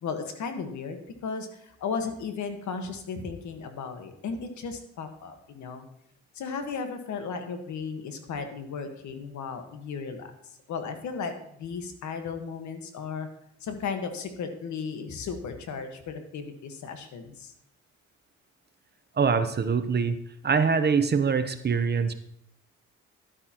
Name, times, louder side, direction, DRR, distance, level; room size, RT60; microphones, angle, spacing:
voice 1, 0.0-5.8 6.3-11.3 11.6-13.3 13.6-17.5, left 5 dB, 70° left, 6 dB, 1.5 m, -35 dB
voice 2, 19.1-20.2 20.4-22.1, right 5 dB, 35° right, 10 dB, 0.8 m, -24 dB
12.0 x 8.5 x 3.0 m, 0.73 s
cardioid pair, 90°, 30 cm